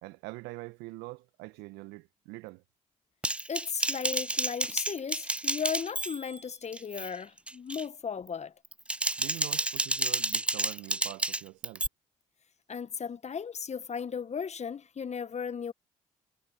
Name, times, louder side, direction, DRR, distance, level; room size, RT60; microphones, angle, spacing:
voice 1, 0.0-2.6 9.2-11.9, right 23 dB, 75° right, 1.4 m, -44 dB
Typing, 3.2-6.4 6.7-7.1 7.5-7.8 8.6-11.9, right 1 dB, 5° right, 0.4 m, -30 dB
voice 2, 3.5-8.5 12.7-15.7, left 6 dB, 40° left, 1.3 m, -36 dB
hypercardioid pair, 40°, 17 cm